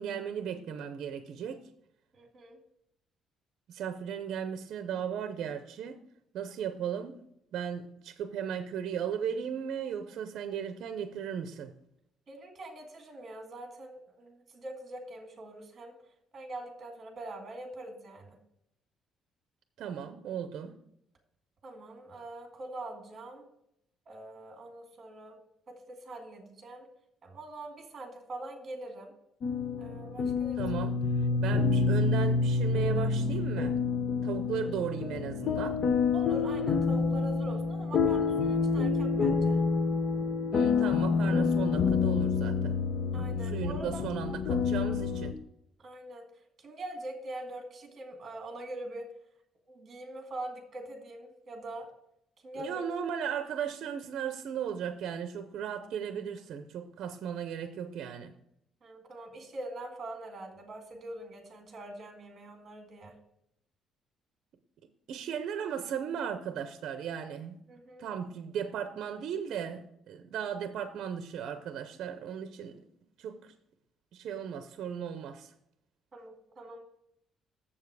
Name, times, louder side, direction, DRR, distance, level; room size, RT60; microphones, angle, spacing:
voice 1, 0.0-1.6 3.7-6.0 6.3-7.2 7.5-11.7 19.8-20.7 30.6-31.0 31.4-33.8 34.2-35.8 40.5-42.8 43.4-45.4 52.6-58.4 65.1-67.6 68.0-72.8 73.2-73.5 74.1-75.5, right 8 dB, 60° right, 0.6 m, -36 dB
voice 2, 2.1-2.6 12.3-15.9 16.3-18.4 21.6-23.5 24.1-25.4 25.7-26.9 27.2-29.1 29.8-30.6 31.2-31.5 36.1-39.6 43.1-44.0 45.8-46.3 46.6-49.1 49.7-51.9 52.4-52.8 58.8-63.1 67.7-68.1 76.1-76.8, right 1 dB, 35° right, 1.9 m, -43 dB
sound 1, 29.4-45.3, left 4 dB, 55° left, 0.7 m, -28 dB
7.2 x 7.2 x 4.8 m
cardioid pair, 150°, 0 cm